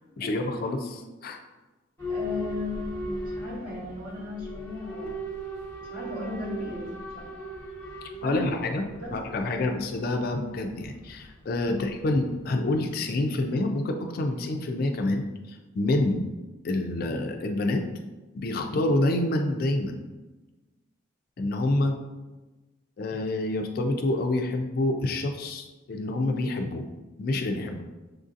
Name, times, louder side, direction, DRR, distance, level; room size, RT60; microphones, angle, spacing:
voice 1, 0.2-1.4 8.2-8.8 9.1-16.2 16.6-17.8 18.3-20.0 21.4-22.0 23.0-26.8 27.2-27.8, left 2 dB, 45° left, 4 dB, 0.3 m, -27 dB
Boat Water vehicle / Alarm, 2.0-12.6, equal, 10° left, 0.9 m, -38 dB
voice 2, 2.1-5.2 5.8-7.3 8.2-8.5 9.0-9.2 9.5-9.7 11.6-11.9, left 2 dB, 45° right, -5 dB, 1.3 m, -36 dB
6.3 x 2.6 x 2.5 m, 1.2 s
head